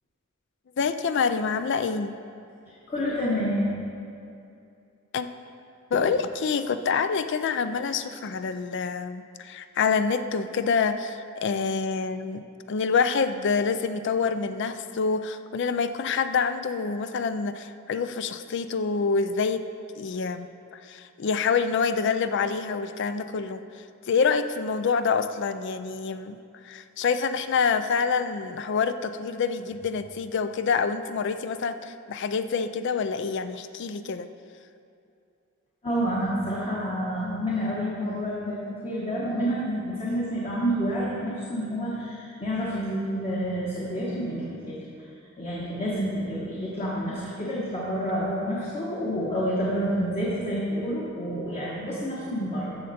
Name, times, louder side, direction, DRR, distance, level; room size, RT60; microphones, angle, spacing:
voice 1, 0.8-2.2 5.1-5.3 5.9-19.7 20.0-34.3, left 5 dB, 60° left, 11 dB, 0.4 m, -27 dB
voice 2, 2.9-3.7 35.8-44.7 45.4-52.8, equal, 30° left, -6 dB, 1.4 m, -28 dB
14.0 x 6.4 x 4.3 m, 2.6 s
head